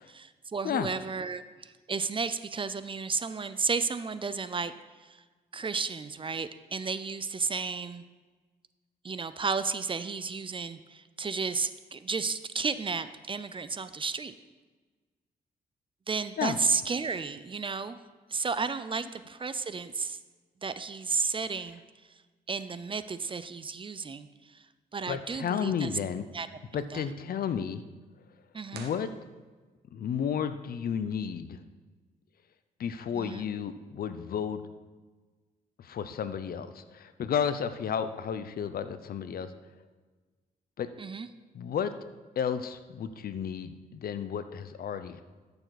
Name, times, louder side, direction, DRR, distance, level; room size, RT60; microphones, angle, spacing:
voice 1, 0.1-4.7 5.1-5.2 5.5-8.0 9.0-14.3 16.1-18.0 18.3-20.2 20.6-21.8 22.5-24.3 24.9-25.9 26.3-26.5 26.8-27.1 28.5-28.9 33.2-33.5 41.0-41.3, right 4 dB, 30° right, 13 dB, 0.6 m, -33 dB
voice 2, 25.1-26.2 26.7-27.8 28.7-29.1 29.9-31.6 32.8-34.6 35.8-39.5 40.8-40.9 41.5-42.0 42.4-45.2, left 7 dB, 65° left, 11 dB, 0.7 m, -32 dB
sound 1, 28.7-29.9, right 6 dB, 80° right, 1.1 m, -48 dB
13.5 x 6.9 x 4.1 m, 1.3 s
cardioid pair, 70°, 17 cm